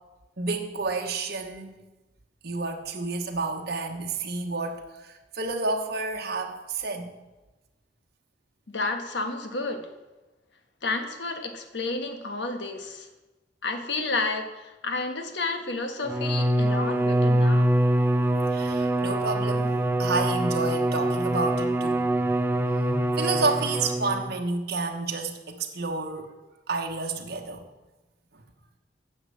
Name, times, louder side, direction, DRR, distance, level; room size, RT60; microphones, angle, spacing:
voice 1, 0.4-1.8 2.4-7.2 18.5-19.7 20.0-22.1 23.2-26.3 26.7-27.7, right 3 dB, 60° right, 2 dB, 1.2 m, -30 dB
voice 2, 8.7-9.9 10.8-13.1 13.6-17.7, left 3 dB, 70° left, 6 dB, 1.3 m, -31 dB
Bowed string instrument, 16.0-24.3, right 1 dB, 10° right, 0.5 m, -24 dB
9.9 x 6.4 x 7.8 m, 1.1 s
head